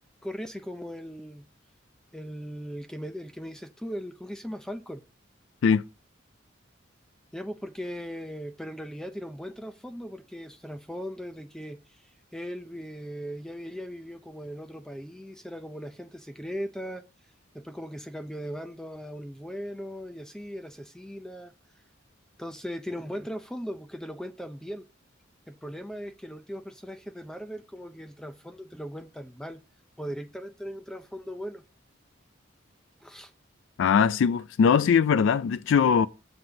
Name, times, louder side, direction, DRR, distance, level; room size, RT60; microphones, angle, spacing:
voice 1, 0.2-1.5 2.1-5.0 7.3-17.0 17.5-21.5 22.4-24.9 25.5-29.6 30.0-31.6 33.0-33.3, equal, 5° left, 0.5 m, -38 dB
voice 2, 33.8-36.1, left 6 dB, 75° left, 0.3 m, -21 dB
7.8 x 7.7 x 3.9 m
head